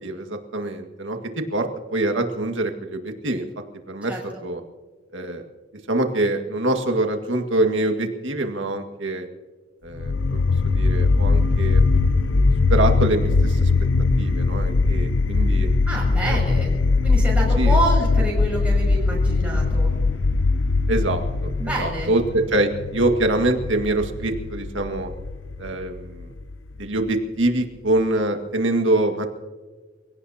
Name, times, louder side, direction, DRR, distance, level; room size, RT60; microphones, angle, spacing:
voice 1, 0.0-3.5 3.9-4.1 4.4-4.6 5.1-5.4 5.9-9.3 9.8-11.8 12.2-12.4 12.7-13.7 14.2-15.7 16.2-16.4 17.6-17.8 20.9-25.1 25.6-26.3 26.8-29.3, right 2 dB, 85° right, 4 dB, 1.9 m, -24 dB
voice 2, 4.1-4.4 15.9-19.9 21.6-22.1, right 1 dB, 5° right, -3 dB, 6.6 m, -28 dB
sound 1, 10.0-27.0, left 3 dB, 90° left, 0.7 m, -21 dB
28.5 x 17.5 x 2.9 m, 1.4 s
head